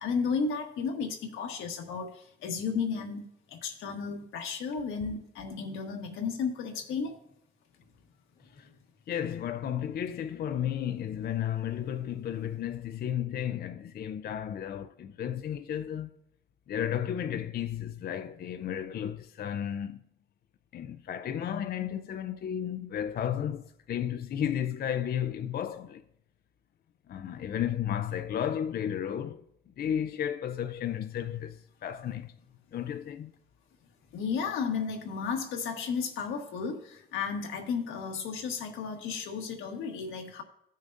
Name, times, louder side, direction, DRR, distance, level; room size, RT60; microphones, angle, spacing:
voice 1, 0.0-7.2 34.1-40.4, left 5 dB, 90° left, 1.4 m, -33 dB
voice 2, 9.1-16.2 16.7-20.0 20.7-26.0 27.1-29.5 29.8-32.4 32.7-33.3, left 9 dB, 50° left, 0.5 m, -33 dB
14.5 x 6.4 x 2.6 m
cardioid pair, 90°, 20 cm